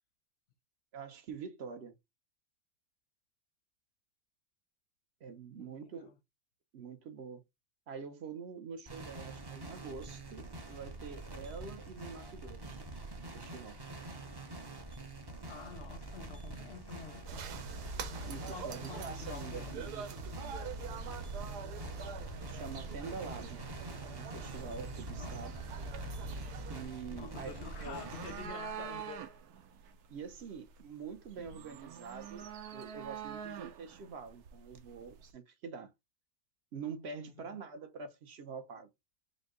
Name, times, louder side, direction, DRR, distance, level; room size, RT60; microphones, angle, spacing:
voice 1, 0.9-2.0 5.2-6.1 6.7-7.4 7.9-12.8 13.2-13.8 18.3-20.1 22.4-23.6 24.1-25.6 26.7-28.0 30.1-35.9 36.7-38.9, right 5 dB, 55° right, 0.8 m, -45 dB
voice 2, 5.6-6.1 14.3-14.5 15.5-17.4 18.5-19.8 25.2-25.4 27.1-29.2 31.3-31.6 37.2-37.6, left 7 dB, 55° left, 0.7 m, -48 dB
sound 1, 8.9-28.5, right 2 dB, 30° right, 0.5 m, -46 dB
sound 2, 17.3-26.8, right 3 dB, 90° right, 1.3 m, -43 dB
sound 3, 24.5-35.3, right 8 dB, 75° right, 1.2 m, -47 dB
5.3 x 2.2 x 3.6 m
omnidirectional pair, 1.7 m